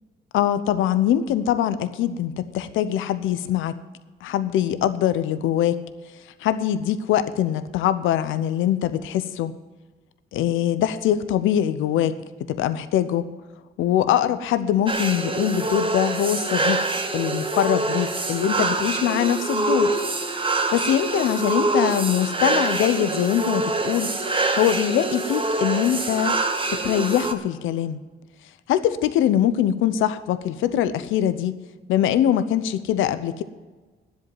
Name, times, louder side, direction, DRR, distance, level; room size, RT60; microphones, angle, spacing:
voice 1, 0.3-3.8 4.2-5.8 6.4-9.5 10.3-12.2 12.5-13.4 13.8-16.8 17.1-19.9 20.7-24.1 24.5-26.4 26.7-28.0 28.7-31.6 31.9-33.4, left 10 dB, 85° left, 13 dB, 0.8 m, -23 dB
sound 1, 14.9-27.3, right 2 dB, 25° right, 1.3 m, -25 dB
10.5 x 8.0 x 9.1 m, 1.3 s
cardioid pair, 90°, 20 cm